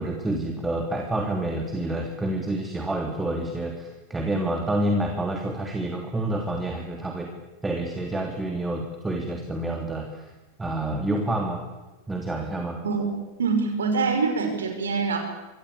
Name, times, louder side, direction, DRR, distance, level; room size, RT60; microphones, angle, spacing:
voice 1, 0.0-7.3 7.6-10.3 10.6-11.6 12.1-12.8, right 1 dB, 10° right, 2 dB, 3.3 m, -28 dB
voice 2, 12.8-15.2, right 4 dB, 65° right, 5 dB, 5.5 m, -25 dB
27.5 x 23.0 x 8.7 m, 1.1 s
figure-of-eight pair, 90°, 0 cm